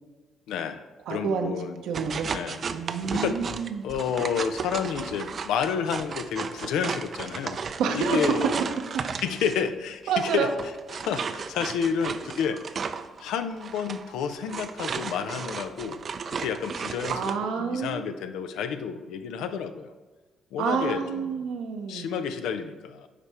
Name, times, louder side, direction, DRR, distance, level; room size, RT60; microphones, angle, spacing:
voice 1, 0.5-1.8 2.3-2.6 3.1-3.4 3.8-8.6 9.2-10.5 10.9-12.6 13.2-16.0 16.4-19.9 20.5-21.5 21.9-23.1, left 7 dB, 80° left, 9 dB, 0.5 m, -30 dB
voice 2, 1.1-1.5 1.8-2.3 2.7-3.9 7.8-8.4 8.9-9.0 10.1-10.5 17.1-18.0 20.6-22.1, right 6 dB, 80° right, 5 dB, 0.8 m, -28 dB
sound 1, 1.9-9.7 10.2-17.4, right 5 dB, 50° right, 0.4 m, -34 dB
9.7 x 3.5 x 4.3 m, 1.3 s
supercardioid pair, 60°, 0 cm